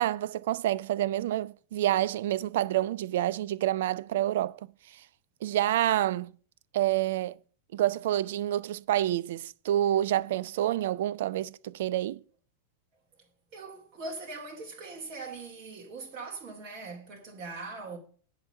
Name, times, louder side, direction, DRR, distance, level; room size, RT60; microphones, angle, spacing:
voice 1, 0.0-4.5 5.4-6.3 6.7-7.4 7.7-12.2, right 13 dB, 55° right, 0.4 m, -28 dB
voice 2, 13.2-18.0, right 3 dB, 40° right, 2.3 m, -41 dB
10.5 x 5.3 x 7.8 m
figure-of-eight pair, 90°, 0 cm